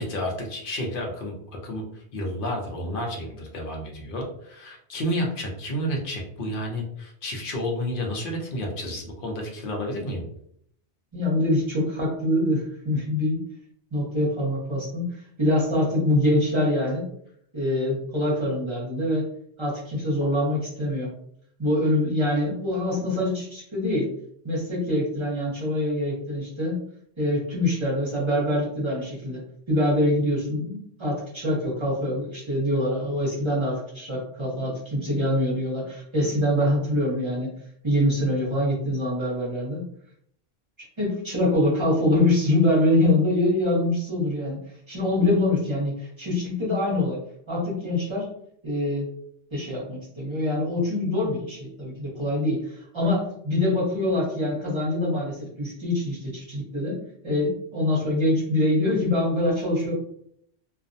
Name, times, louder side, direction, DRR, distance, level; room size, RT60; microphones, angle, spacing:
voice 1, 0.0-1.3 1.6-10.2, equal, 55° left, 1 dB, 0.7 m, -30 dB
voice 2, 11.1-13.4 13.9-17.0 17.5-19.3 19.6-21.1 21.6-24.1 24.4-26.8 27.2-29.4 29.7-37.5 37.8-39.8 41.0-44.6 44.9-47.2 47.5-48.3 48.6-49.1 49.5-57.0 57.2-59.9, left 1 dB, 30° right, -5 dB, 0.8 m, -24 dB
2.4 x 2.0 x 2.6 m, 0.68 s
omnidirectional pair, 1.1 m